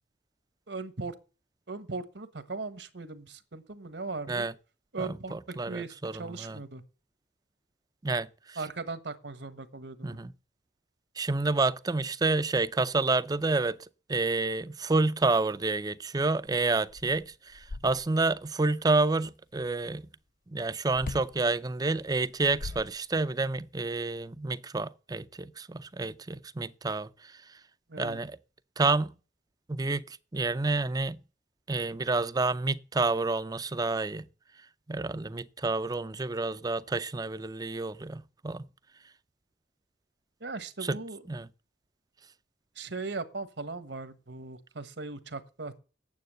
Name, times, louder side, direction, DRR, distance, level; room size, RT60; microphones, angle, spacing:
voice 1, 0.7-1.1 1.7-4.5 4.9-6.8 8.6-10.2 27.9-28.2 40.4-41.2 42.7-45.8, right 3 dB, 70° right, 1.3 m, -38 dB
voice 2, 5.0-6.6 8.0-8.6 10.0-10.3 11.2-13.8 14.1-20.0 20.5-27.6 28.0-28.3 28.8-29.1 29.7-31.2 31.7-34.3 34.9-38.7 40.8-41.0 41.3-41.5, right 3 dB, 20° right, 0.5 m, -29 dB
sound 1, 16.5-16.6 16.9-18.4 20.9-21.4 22.2-23.5, left 3 dB, 50° left, 0.5 m, -41 dB
9.4 x 7.5 x 7.7 m
head